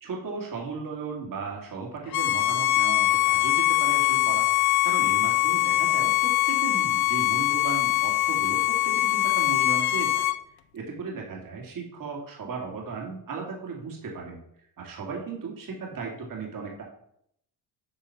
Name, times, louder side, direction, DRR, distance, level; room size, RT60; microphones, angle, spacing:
voice 1, 0.0-10.3 10.7-16.8, right 4 dB, 55° right, -1 dB, 2.4 m, -36 dB
Bowed string instrument, 2.1-10.4, left 16 dB, 70° left, 0.6 m, -23 dB
9.1 x 4.8 x 5.9 m, 0.72 s
cardioid pair, 105°, 39 cm